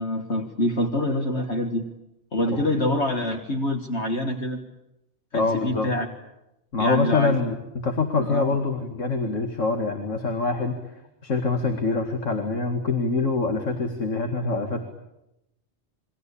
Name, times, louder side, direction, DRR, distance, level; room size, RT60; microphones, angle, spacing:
voice 1, 0.0-1.8 2.3-4.6 5.3-6.1 6.8-7.4 8.2-8.6, left 1 dB, 60° left, 4 dB, 2.1 m, -26 dB
voice 2, 5.3-5.9 6.7-7.5 7.8-10.8 11.2-14.8, left 3 dB, 80° left, 4 dB, 2.5 m, -25 dB
28.0 x 22.5 x 8.6 m, 0.89 s
omnidirectional pair, 1.3 m